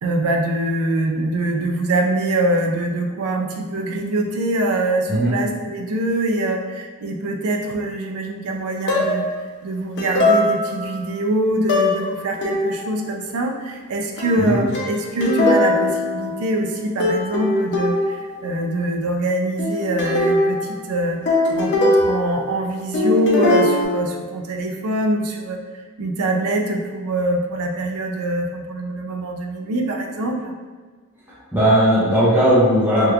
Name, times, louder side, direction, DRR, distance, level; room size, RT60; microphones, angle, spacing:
voice 1, 0.0-9.3 9.6-25.6 26.0-30.5, right 1 dB, 85° right, 2 dB, 0.4 m, -23 dB
sound 1, 8.9-9.4 10.0-11.0 11.7-12.1 12.4-13.0 14.2-16.7 17.0-18.4 19.6-22.7 22.9-23.8, left 2 dB, 55° left, 0.5 m, -21 dB
voice 2, 31.5-33.1, right 1 dB, 10° right, -10 dB, 0.8 m, -16 dB
3.2 x 3.0 x 2.4 m, 1.4 s
head